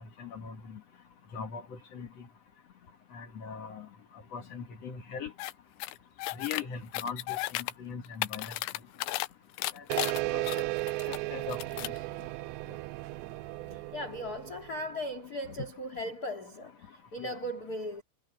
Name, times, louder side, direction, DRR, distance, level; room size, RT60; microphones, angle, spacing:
voice 1, 0.2-0.5 1.3-2.1 3.1-3.9 4.3-5.3 6.3-7.4 7.8-8.5 9.7-9.8 10.3-10.6 11.3-11.6 17.2-17.4, left 6 dB, 65° left, 1.6 m, -40 dB
sound 1, 5.4-5.5 5.8-6.6 6.9-7.7 8.1-9.3 9.6-11.2 11.5-12.0, left 18 dB, 85° left, 3.0 m, -34 dB
sound 2, 9.9-15.0, right 22 dB, 85° right, 2.6 m, -35 dB
voice 2, 13.7-18.0, equal, 30° left, 2.1 m, -38 dB
omnidirectional pair, 5.3 m